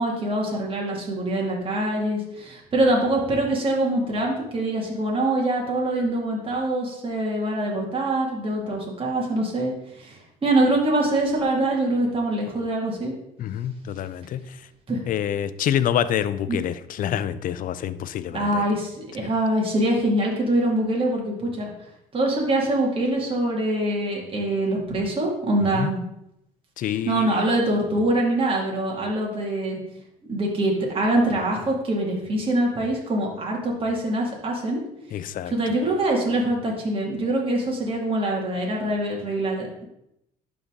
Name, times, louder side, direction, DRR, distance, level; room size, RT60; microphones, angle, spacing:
voice 1, 0.0-13.1 14.9-15.0 16.5-16.6 18.3-21.7 22.1-26.0 26.8-29.8 30.3-34.8 35.5-39.9, right 1 dB, 35° right, -2 dB, 2.2 m, -24 dB
voice 2, 13.4-14.6 15.1-18.6 19.2-19.3 25.7-25.9 26.8-27.4 35.1-35.5, left 10 dB, 55° left, 14 dB, 0.5 m, -27 dB
11.5 x 4.1 x 3.7 m, 0.82 s
cardioid pair, 110°, 17 cm